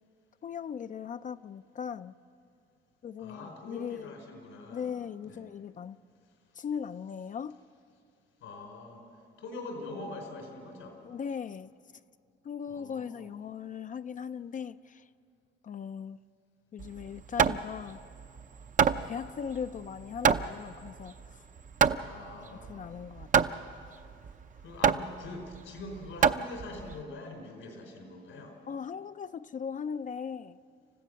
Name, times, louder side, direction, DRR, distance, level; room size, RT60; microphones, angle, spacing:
voice 1, 0.4-2.1 3.0-4.1 4.7-6.0 6.5-7.6 11.0-11.7 12.4-15.1 15.6-16.2 16.7-18.0 19.0-21.4 22.7-23.6 28.7-30.6, left 7 dB, 40° left, 0.4 m, -38 dB
voice 2, 3.2-4.9 5.2-5.5 8.4-9.0 9.4-11.0 12.7-13.3 22.0-22.9 23.8-23.9 24.6-28.5, left 2 dB, 90° left, 4.5 m, -44 dB
Hammer, 16.8-27.0, right 7 dB, 40° right, 0.6 m, -28 dB
28.0 x 15.0 x 6.4 m
cardioid pair, 90°, 20 cm